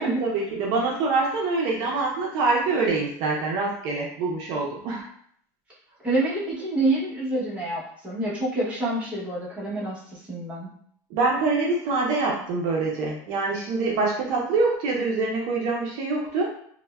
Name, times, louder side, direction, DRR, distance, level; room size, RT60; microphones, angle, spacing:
voice 1, 0.0-5.0 11.1-16.5, right 3 dB, 60° right, -2 dB, 0.5 m, -25 dB
voice 2, 6.0-10.7, right 2 dB, 15° right, -7 dB, 0.8 m, -27 dB
3.2 x 2.0 x 2.2 m, 0.64 s
cardioid pair, 160°, 9 cm